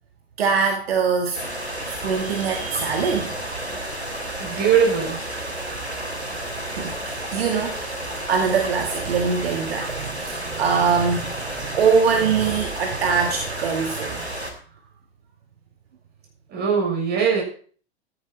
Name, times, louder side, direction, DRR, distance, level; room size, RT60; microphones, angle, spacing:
voice 1, 0.4-1.4 1.8-3.4 6.8-14.2, right 5 dB, 65° right, 3 dB, 1.9 m, -23 dB
sound 1, 1.3-14.5, right 1 dB, 90° right, 3.3 m, -31 dB
voice 2, 4.4-5.2 16.5-17.4, right 7 dB, 30° right, 0 dB, 6.8 m, -20 dB
13.0 x 11.0 x 4.2 m, 0.44 s
figure-of-eight pair, 90°, 32 cm